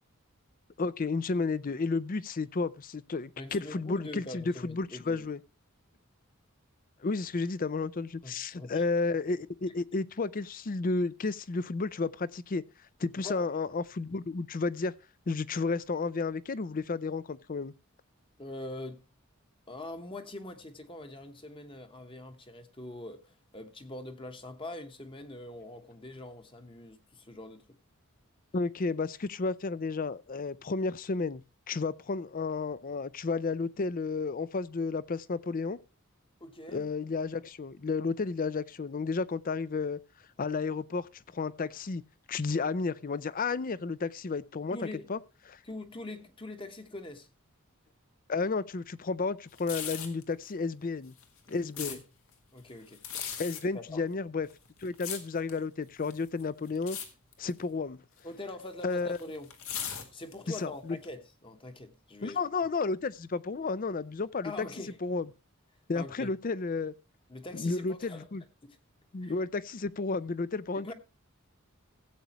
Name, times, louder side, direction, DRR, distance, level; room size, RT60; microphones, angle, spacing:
voice 1, 0.8-5.4 7.0-12.6 13.0-14.9 15.3-17.7 28.5-31.4 31.7-35.8 36.7-40.0 40.4-42.0 42.3-44.8 45.1-45.2 45.5-45.6 48.3-51.1 51.5-52.0 53.4-54.5 54.8-57.0 57.4-58.0 58.8-59.2 60.6-61.0 62.2-64.7 65.0-65.3 65.9-66.9 67.5-68.4 69.1-70.9, left 4 dB, 40° left, 0.5 m, -32 dB
voice 2, 3.4-5.2 8.2-8.9 13.2-13.5 18.4-19.0 19.7-27.6 36.4-36.8 44.7-45.1 45.6-47.3 51.8-52.0 52.5-53.0 53.7-54.0 58.2-59.5 60.1-62.4 64.4-65.0 65.9-66.3 67.3-68.3 68.6-68.8 69.2-69.3 70.7-70.9, left 2 dB, 25° left, 1.2 m, -43 dB
sound 1, 49.5-50.2 51.0-52.0 52.9-53.6 54.4-55.6 56.0-56.4 56.7-57.1 57.3-57.6 58.5-60.6 61.0-61.1, left 8 dB, 75° left, 2.0 m, -38 dB
15.5 x 8.2 x 3.0 m
head